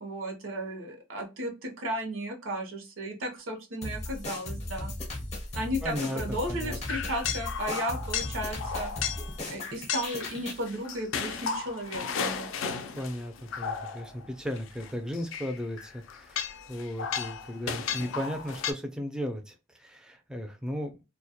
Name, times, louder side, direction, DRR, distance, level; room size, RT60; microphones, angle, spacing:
voice 1, 0.0-4.9 5.5-8.9 9.5-12.5, equal, 90° right, 0.7 m, -34 dB
sound 1, 3.8-10.7, left 1 dB, 35° left, 0.6 m, -37 dB
voice 2, 5.8-6.8 13.0-20.9, equal, 5° right, 0.3 m, -36 dB
sound 2, 6.0-6.3 6.8-9.4 9.9-14.3 14.6-18.7, left 6 dB, 75° left, 0.3 m, -34 dB
2.1 x 2.1 x 2.7 m
head